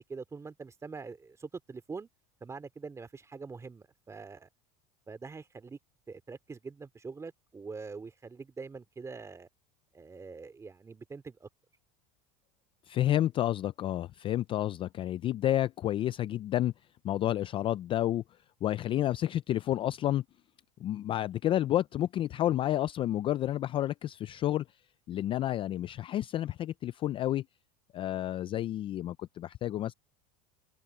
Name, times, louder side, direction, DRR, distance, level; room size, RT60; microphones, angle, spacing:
voice 1, 0.0-2.1 2.4-4.5 5.1-5.8 6.1-9.5 9.9-11.5, right 4 dB, 15° right, 2.5 m, -44 dB
voice 2, 12.9-16.7 17.0-18.2 18.6-20.2 20.8-24.7 25.1-27.4 27.9-29.9, left 13 dB, 30° left, 0.3 m, -30 dB
open air
supercardioid pair, 140°, 19 cm